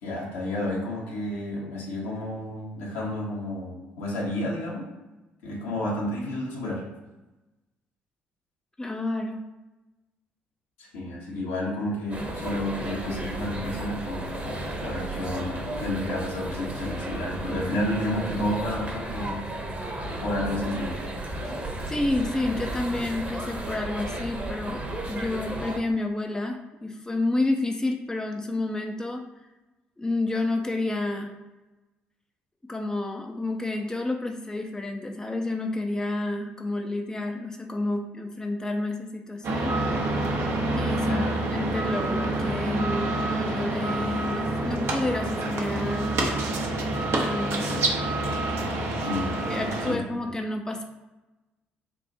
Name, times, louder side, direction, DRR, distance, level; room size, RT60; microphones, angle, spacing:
voice 1, 0.0-4.9 5.4-6.8 10.8-19.5 20.2-21.0 41.1-41.4 49.0-49.4 49.9-50.0, left 1 dB, 80° left, -4 dB, 1.3 m, -31 dB
voice 2, 8.8-9.5 21.4-21.6 21.9-24.8 25.1-29.3 30.0-31.3 32.7-39.8 40.7-46.2 47.1-47.9 49.1-50.8, left 2 dB, 15° left, 2 dB, 0.5 m, -30 dB
sound 1, 12.1-25.8, right 1 dB, 30° right, 1.1 m, -34 dB
sound 2, 39.4-49.9, right 2 dB, 60° right, 0.9 m, -27 dB
3.5 x 2.5 x 4.2 m, 1.1 s
hypercardioid pair, 50°, 5 cm